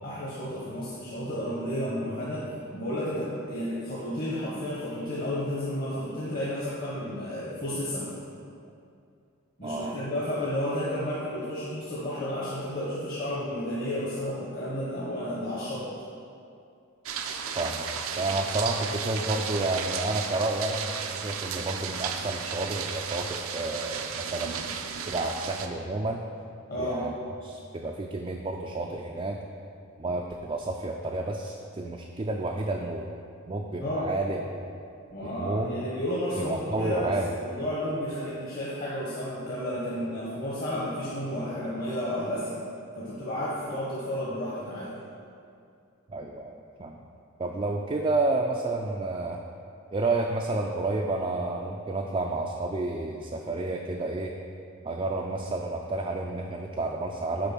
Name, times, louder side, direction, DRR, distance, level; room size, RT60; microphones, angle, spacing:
voice 1, 0.0-8.1 9.6-15.9 26.7-27.0 33.8-34.1 35.1-42.6 42.9-44.9, left 1 dB, 45° left, -8 dB, 1.2 m, -32 dB
voice 2, 9.6-10.0 17.6-24.7 25.1-26.2 26.8-27.1 27.4-29.4 30.0-33.1 33.5-34.6 35.2-35.9 36.4-37.3 46.1-47.0 47.4-49.4 49.9-54.3 54.8-57.5, right 2 dB, 25° right, 0 dB, 0.3 m, -30 dB
sound 1, 17.1-25.7, right 7 dB, 80° right, 0.5 m, -34 dB
6.6 x 5.0 x 6.0 m, 2.5 s
head